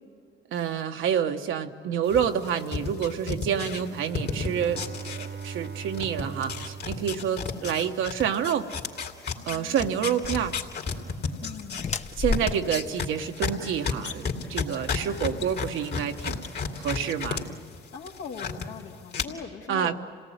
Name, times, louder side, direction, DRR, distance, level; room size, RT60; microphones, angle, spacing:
voice 1, 0.5-8.7 9.4-10.6 12.2-16.5 16.8-17.4 19.7-20.0, right 8 dB, 80° right, 6 dB, 1.3 m, -28 dB
sound 1, 2.1-5.7 5.9-17.4 17.7-18.7 19.1-19.2, left 5 dB, 55° left, 2.9 m, -32 dB
Bowed string instrument, 3.8-8.1, right 6 dB, 65° right, 1.1 m, -40 dB
voice 2, 9.5-10.2 11.4-11.9 17.9-19.9, left 6 dB, 75° left, 1 dB, 2.4 m, -41 dB
sound 2, 10.2-16.3, left 4 dB, 35° left, 0.8 m, -36 dB
27.5 x 18.0 x 9.3 m, 2.1 s
cardioid pair, 90°, 20 cm